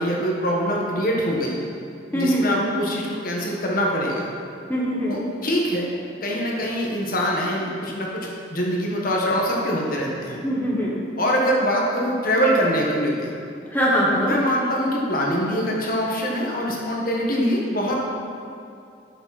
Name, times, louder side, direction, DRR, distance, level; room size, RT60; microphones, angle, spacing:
voice 1, 0.0-1.6 2.1-4.3 5.1-5.9 6.2-10.4 11.2-13.3 14.1-17.9, equal, 45° left, -2 dB, 1.5 m, -24 dB
voice 2, 2.1-2.6 4.7-5.2 10.4-11.0 13.7-14.3, equal, 10° left, -6 dB, 1.3 m, -22 dB
12.0 x 7.0 x 4.2 m, 2.5 s
head